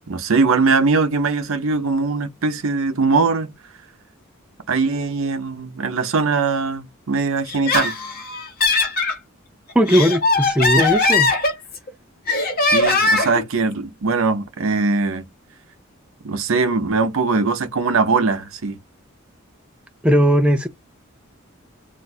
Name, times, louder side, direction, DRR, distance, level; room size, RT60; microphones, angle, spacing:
voice 1, 0.1-3.5 4.7-7.9 12.6-15.3 16.2-18.8, right 4 dB, 70° right, 0.7 m, -21 dB
Laughter, 7.5-9.2 9.7-11.9 12.3-13.4, left 3 dB, 45° left, 1.0 m, -20 dB
voice 2, 9.7-11.3 20.0-20.7, equal, 5° right, 0.4 m, -17 dB
2.5 x 2.3 x 4.1 m
head